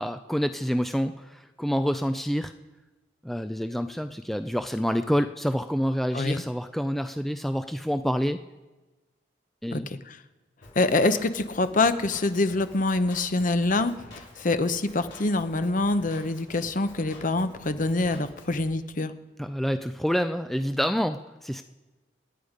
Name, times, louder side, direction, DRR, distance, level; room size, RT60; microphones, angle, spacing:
voice 1, 0.0-2.5 3.2-8.4 9.6-9.9 19.4-21.6, equal, ahead, 9 dB, 0.4 m, -27 dB
voice 2, 9.7-10.2 10.8-13.9 14.4-19.1, left 2 dB, 45° left, 11 dB, 0.8 m, -25 dB
Drum kit, 10.6-18.6, left 2 dB, 85° left, 4.7 m, -48 dB
26.0 x 9.9 x 5.1 m, 1.1 s
head